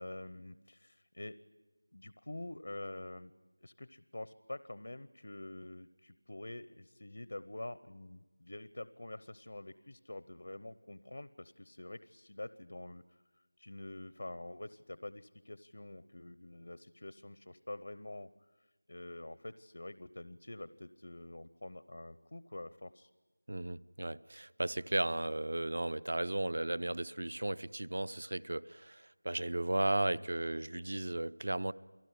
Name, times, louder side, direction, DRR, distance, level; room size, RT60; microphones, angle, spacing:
voice 1, 0.0-1.4 1.9-3.3 3.6-18.3 18.6-23.1, left 1 dB, 55° left, 16 dB, 0.9 m, -47 dB
voice 2, 23.5-31.7, right 1 dB, 50° right, 20 dB, 0.7 m, -35 dB
29.0 x 18.5 x 9.9 m, 1.3 s
figure-of-eight pair, 175°, 0 cm